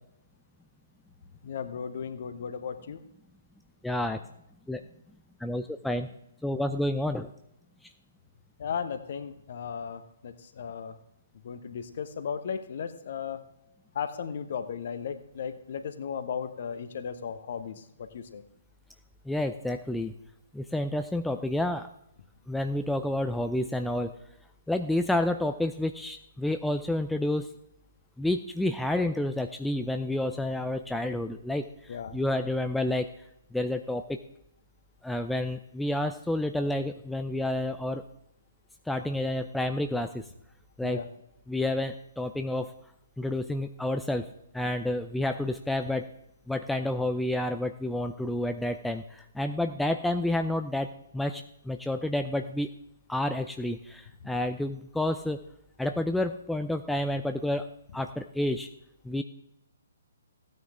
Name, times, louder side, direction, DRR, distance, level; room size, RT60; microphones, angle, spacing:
voice 1, 1.4-3.0 8.6-11.0 11.4-13.4 13.9-18.4 31.9-32.2 40.8-41.1, left 7 dB, 45° left, 10 dB, 1.1 m, -36 dB
voice 2, 3.8-4.2 4.7-4.8 5.4-6.1 6.4-7.3 19.3-20.1 20.5-21.9 22.5-24.1 24.7-27.5 28.2-31.7 32.1-33.1 33.5-34.2 35.0-38.0 38.9-40.2 40.8-41.0 41.5-42.7 43.2-44.3 44.5-46.1 46.5-52.7 53.1-55.4 55.8-58.7 59.0-59.2, left 1 dB, ahead, 6 dB, 0.4 m, -29 dB
16.0 x 9.4 x 3.6 m, 0.80 s
figure-of-eight pair, 130°, 0 cm